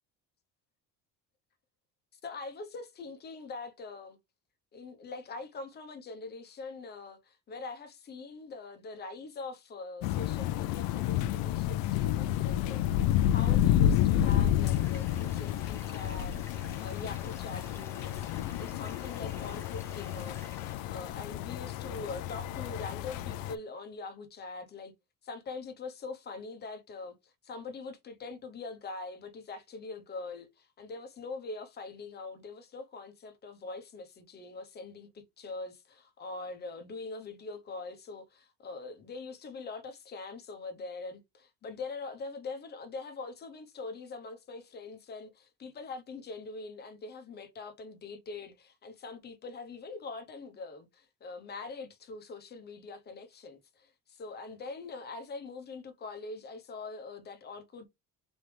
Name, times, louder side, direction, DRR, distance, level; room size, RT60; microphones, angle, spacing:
voice 1, 2.1-4.2 4.7-12.8 13.3-24.9 25.2-57.9, left 3 dB, 30° left, 0.9 m, -43 dB
sound 1, 10.0-23.6, left 11 dB, 80° left, 0.6 m, -30 dB
sound 2, 14.6-20.7, left 1 dB, 5° left, 1.1 m, -53 dB
4.1 x 3.4 x 3.3 m
cardioid pair, 150°, 35 cm